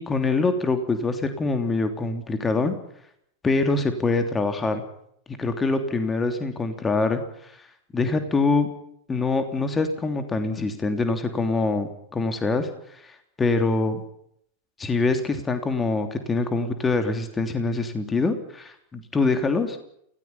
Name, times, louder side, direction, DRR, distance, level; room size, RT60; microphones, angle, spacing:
voice 1, 0.0-2.7 3.4-4.8 5.4-7.5 7.9-8.7 9.1-12.7 13.0-13.1 13.4-14.0 14.8-19.8, left 3 dB, 15° left, 7 dB, 3.1 m, -24 dB
28.5 x 18.5 x 5.6 m, 0.70 s
figure-of-eight pair, 90°, 0 cm